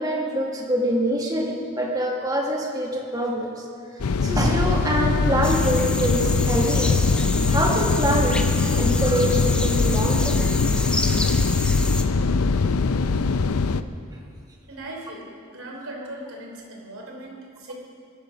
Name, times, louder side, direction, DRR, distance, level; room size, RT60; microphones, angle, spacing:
voice 1, 0.0-7.0 7.5-10.5, equal, 15° right, -1 dB, 2.0 m, -25 dB
sound 1, 4.0-13.8, left 4 dB, 85° left, 0.6 m, -22 dB
sound 2, 5.4-12.0, left 1 dB, 5° left, 0.6 m, -31 dB
voice 2, 14.7-17.7, right 1 dB, 70° right, 0 dB, 3.4 m, -38 dB
22.0 x 12.0 x 5.2 m, 2.4 s
head